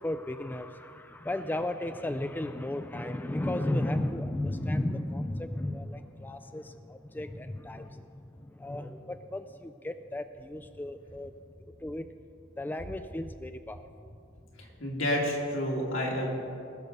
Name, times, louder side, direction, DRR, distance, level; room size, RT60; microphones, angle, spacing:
voice 1, 0.0-11.3 11.6-12.1 12.6-13.9, left 1 dB, 10° left, 9 dB, 0.3 m, -34 dB
voice 2, 14.6-16.3, left 1 dB, 80° left, -2 dB, 2.5 m, -30 dB
19.5 x 6.6 x 5.4 m, 2.5 s
head